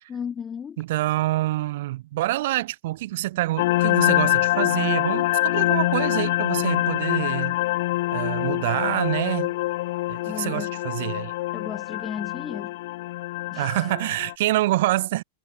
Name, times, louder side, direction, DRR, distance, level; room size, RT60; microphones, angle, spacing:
voice 1, 0.1-0.8 10.3-10.7 11.5-12.8 13.5-13.9, left 7 dB, 20° left, 2.3 m, -34 dB
voice 2, 0.8-7.6 8.1-9.5 10.1-11.3 13.5-15.2, right 16 dB, 55° right, 1.0 m, -26 dB
sound 1, 3.6-14.3, left 18 dB, 55° left, 0.6 m, -25 dB
figure-of-eight pair, 90°, 0 cm